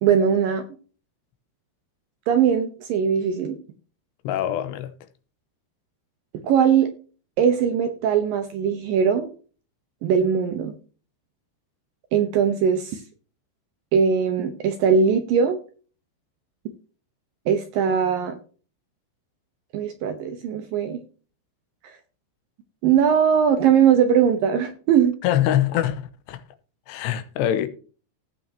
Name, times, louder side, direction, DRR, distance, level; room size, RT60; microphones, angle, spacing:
voice 1, 0.0-0.6 2.3-3.6 6.4-6.9 7.4-9.3 10.0-10.7 12.1-13.0 13.9-15.6 17.5-18.4 19.7-21.0 21.8-21.9 22.8-25.1, right 7 dB, 80° right, 2.1 m, -20 dB
voice 2, 4.2-4.9 25.2-26.0 26.3-26.4 26.9-27.7, left 11 dB, 80° left, 2.8 m, -23 dB
17.0 x 6.2 x 2.8 m
omnidirectional pair, 5.3 m